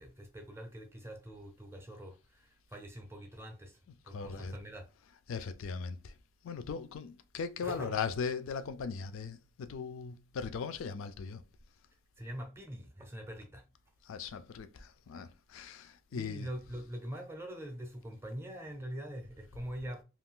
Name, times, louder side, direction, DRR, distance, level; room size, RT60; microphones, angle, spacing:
voice 1, 0.0-4.9 7.6-8.0 12.2-13.6 16.1-20.0, equal, 10° right, 0.5 m, -44 dB
voice 2, 4.1-4.6 5.3-6.1 6.4-11.4 14.0-16.5, left 5 dB, 65° left, 0.3 m, -39 dB
2.4 x 2.3 x 3.6 m
head